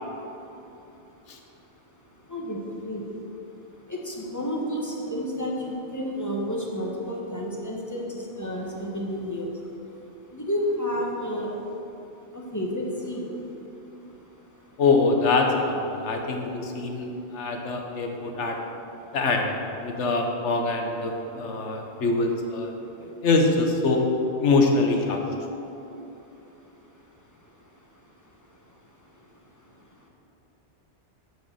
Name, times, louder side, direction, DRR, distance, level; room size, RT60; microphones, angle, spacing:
voice 1, 2.3-3.0 3.9-9.5 10.3-11.5 12.3-13.3, equal, 15° left, -2 dB, 1.1 m, -30 dB
voice 2, 14.8-18.6 19.1-19.6 19.8-22.7 23.0-24.1 24.4-25.2, left 3 dB, 90° left, 2 dB, 1.3 m, -24 dB
9.1 x 4.7 x 6.8 m, 2.9 s
omnidirectional pair, 1.2 m